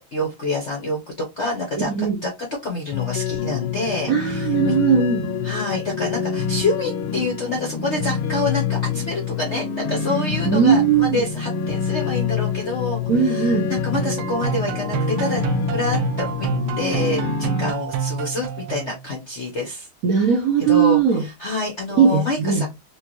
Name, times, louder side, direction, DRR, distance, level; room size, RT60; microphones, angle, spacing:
voice 1, 0.1-2.3 2.6-4.8 5.4-15.4 15.7-16.5 16.8-19.9 20.7-22.7, left 2 dB, 50° left, 0.8 m, -27 dB
sound 1, 2.9-17.7, left 7 dB, 75° left, 1.4 m, -26 dB
voice 2, 4.1-5.3 10.5-11.2 13.1-13.7 20.0-21.2 22.0-22.7, right 7 dB, 60° right, 0.9 m, -18 dB
sound 2, 13.9-19.1, right 7 dB, 80° right, 1.4 m, -27 dB
4.6 x 2.5 x 2.9 m
omnidirectional pair, 2.3 m